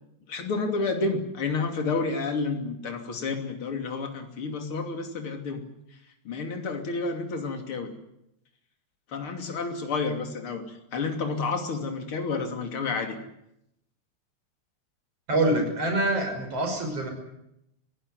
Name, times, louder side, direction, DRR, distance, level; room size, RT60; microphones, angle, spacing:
voice 1, 0.3-5.6 6.3-7.9 9.1-13.2, left 4 dB, 45° left, 5 dB, 3.5 m, -30 dB
voice 2, 15.3-17.1, right 1 dB, 50° right, 4 dB, 7.0 m, -25 dB
26.5 x 16.5 x 9.7 m, 0.83 s
omnidirectional pair, 3.4 m